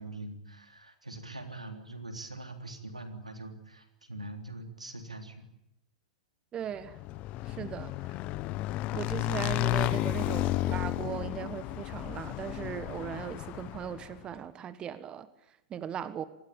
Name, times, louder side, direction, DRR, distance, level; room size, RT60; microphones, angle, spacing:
voice 1, 0.0-5.4, right 2 dB, 90° right, 3.5 m, -43 dB
voice 2, 6.5-7.0 7.4-8.2 8.9-16.3, right 9 dB, 25° right, 1.4 m, -38 dB
Motorcycle / Engine, 6.8-14.2, left 17 dB, 40° left, 1.0 m, -33 dB
26.5 x 20.5 x 8.8 m
figure-of-eight pair, 100°, 4 cm